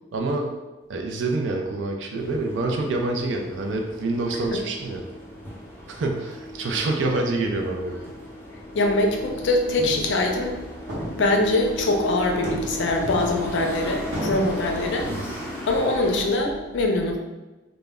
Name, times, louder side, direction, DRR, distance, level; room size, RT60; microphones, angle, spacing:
voice 1, 0.1-0.6 0.9-5.0 5.9-7.9 15.0-15.3, right 2 dB, 85° right, 2 dB, 0.4 m, -26 dB
sound 1, 2.2-16.2, equal, 10° left, 0.5 m, -37 dB
voice 2, 8.7-10.6 11.1-15.1 15.7-17.2, left 2 dB, 75° left, 3 dB, 0.4 m, -23 dB
sound 2, 9.2-9.5 9.8-10.2 10.5-10.6 10.9-11.7 12.3-13.7 14.1-14.5, equal, 70° right, 0.9 m, -33 dB
2.1 x 2.1 x 3.4 m, 1.1 s
head